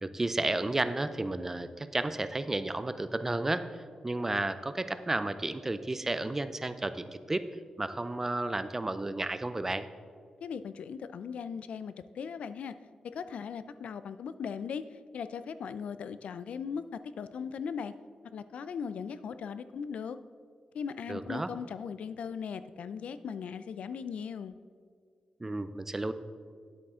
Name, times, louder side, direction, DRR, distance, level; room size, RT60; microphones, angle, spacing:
voice 1, 0.0-7.4 7.8-9.9 21.1-21.5 25.4-26.1, right 2 dB, 20° right, 12 dB, 0.4 m, -32 dB
voice 2, 10.4-12.8 13.0-14.8 15.1-17.9 18.2-20.2 20.7-24.5, left 6 dB, 85° left, 13 dB, 0.4 m, -38 dB
10.0 x 8.3 x 3.7 m, 2.1 s
wide cardioid pair, 140°, 2 cm